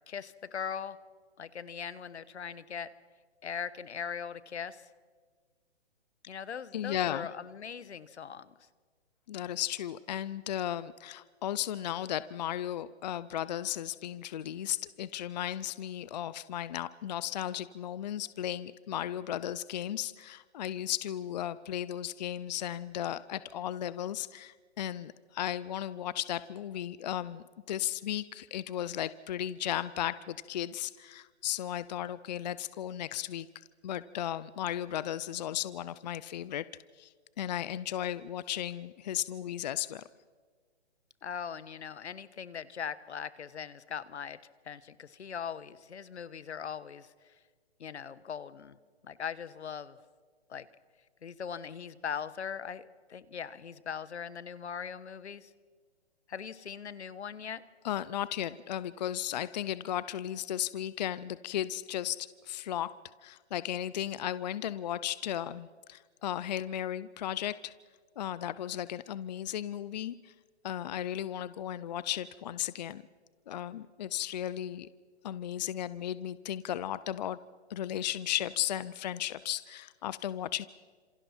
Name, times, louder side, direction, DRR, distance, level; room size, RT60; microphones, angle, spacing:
voice 1, 0.1-1.0 1.4-2.9 3.4-4.8 6.3-8.5 41.2-44.4 44.6-47.3 47.8-48.8 49.0-50.0 50.5-50.7 51.2-55.5 56.3-57.6, left 7 dB, 80° left, 16 dB, 1.3 m, -40 dB
voice 2, 6.7-7.3 9.3-33.5 33.8-36.6 37.0-40.0 57.8-62.9 63.2-67.7 68.2-70.3 70.6-73.0 73.5-74.9 75.2-77.4 77.7-80.7, left 11 dB, 40° left, 16 dB, 0.5 m, -35 dB
30.0 x 27.0 x 4.4 m, 1.5 s
hypercardioid pair, 150°, 33 cm